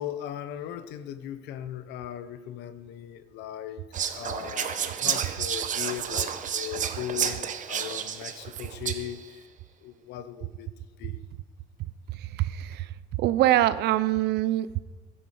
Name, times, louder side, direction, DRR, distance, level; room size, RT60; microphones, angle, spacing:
voice 1, 0.0-3.8 4.1-9.4 9.8-10.7 11.0-11.2, left 11 dB, 85° left, 12 dB, 1.0 m, -38 dB
Whispering, 3.9-9.2, right 8 dB, 50° right, 1.0 m, -31 dB
voice 2, 12.1-14.7, right 14 dB, 75° right, 15 dB, 0.7 m, -24 dB
16.0 x 11.0 x 5.0 m, 1.3 s
cardioid pair, 110°, 17 cm